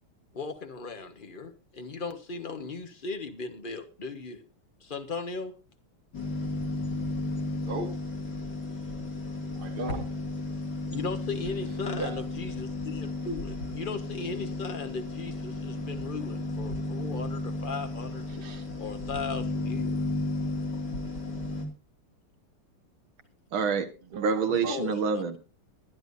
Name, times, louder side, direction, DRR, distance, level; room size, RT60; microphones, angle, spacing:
voice 1, 0.3-4.4 4.8-5.5 10.9-18.2 18.8-20.1 24.7-25.2, left 4 dB, 30° left, 6 dB, 1.2 m, -37 dB
sound 1, 6.1-21.7, left 2 dB, 50° left, 3.1 m, -34 dB
voice 2, 7.5-7.9 9.6-10.1 11.6-12.2 18.3-18.6 24.1-24.8, right 3 dB, 25° right, 4 dB, 1.8 m, -37 dB
voice 3, 23.5-25.4, right 5 dB, 65° right, 7 dB, 2.1 m, -27 dB
22.0 x 10.5 x 2.7 m, 0.32 s
omnidirectional pair, 2.4 m